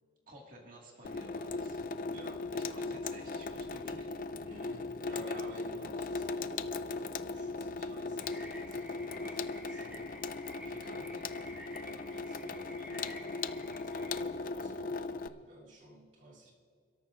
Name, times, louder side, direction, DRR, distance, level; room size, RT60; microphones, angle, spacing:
voice 1, 0.3-1.8 2.5-4.1 10.6-11.3, right 1 dB, 50° right, -2 dB, 1.9 m, -53 dB
Water tap faucet / Sink (filling or washing), 1.0-15.3, left 3 dB, 50° left, 0.4 m, -38 dB
voice 2, 2.1-2.7 4.5-6.6 6.9-10.0 10.9-11.1 11.6-16.5, right 1 dB, 85° right, -5 dB, 3.0 m, -53 dB
sound 1, 8.2-14.2, equal, 5° right, 1.7 m, -51 dB
29.0 x 13.0 x 2.5 m, 2.5 s
head